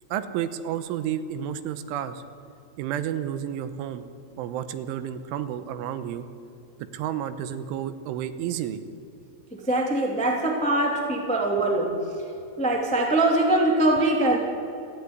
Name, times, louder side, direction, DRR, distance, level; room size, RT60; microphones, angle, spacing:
voice 1, 0.1-2.2 2.8-4.0 4.4-6.3 6.9-8.8, right 10 dB, 90° right, 11 dB, 3.4 m, -31 dB
voice 2, 9.5-12.0 12.6-14.4, right 1 dB, 5° left, 0 dB, 1.1 m, -22 dB
28.5 x 10.5 x 9.5 m, 2.7 s
omnidirectional pair, 5.6 m